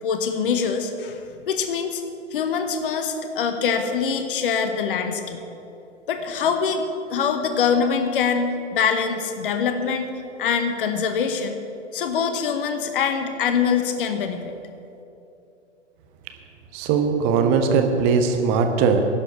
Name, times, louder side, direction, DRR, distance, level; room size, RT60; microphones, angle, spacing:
voice 1, 0.0-2.0 2.3-5.4 6.1-6.8 7.1-10.1 10.4-11.6 11.9-14.5, left 6 dB, 45° left, 7 dB, 1.1 m, -24 dB
voice 2, 16.7-19.0, right 5 dB, 10° right, 5 dB, 0.4 m, -20 dB
11.5 x 7.2 x 9.8 m, 2.8 s
figure-of-eight pair, 115°, 36 cm